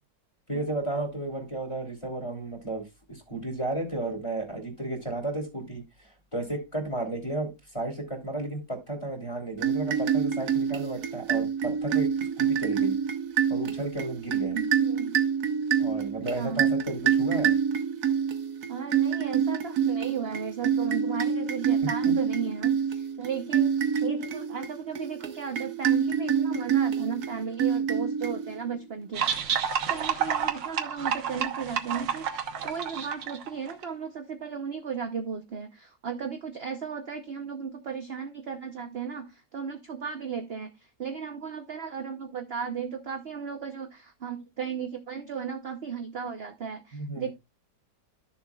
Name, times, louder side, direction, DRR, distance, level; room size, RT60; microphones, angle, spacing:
voice 1, 0.5-12.1 12.4-13.0 13.5-14.6 15.8-17.5 21.8-22.1 46.9-47.3, right 2 dB, 15° left, 3.0 m, -33 dB
sound 1, 9.6-28.8, right 7 dB, 60° right, 1.5 m, -27 dB
voice 2, 14.5-15.2 16.3-16.6 18.7-29.3 29.9-47.3, right 6 dB, 45° right, 0.9 m, -35 dB
sound 2, 29.1-33.8, right 8 dB, 85° right, 1.8 m, -29 dB
13.0 x 7.1 x 2.3 m
omnidirectional pair, 1.9 m